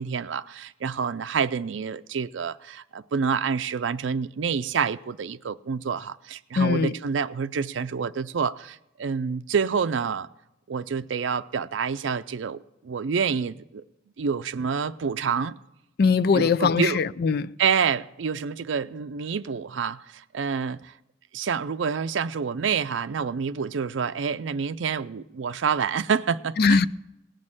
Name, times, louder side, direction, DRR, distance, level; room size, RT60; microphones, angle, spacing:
voice 1, 0.0-10.3 10.7-13.8 14.2-15.5 16.3-17.0 17.6-20.9 21.3-26.8, right 6 dB, 80° right, 0.5 m, -28 dB
voice 2, 6.6-6.9 16.0-17.5 26.6-26.9, left 5 dB, 55° left, 0.4 m, -21 dB
18.0 x 6.4 x 8.8 m
head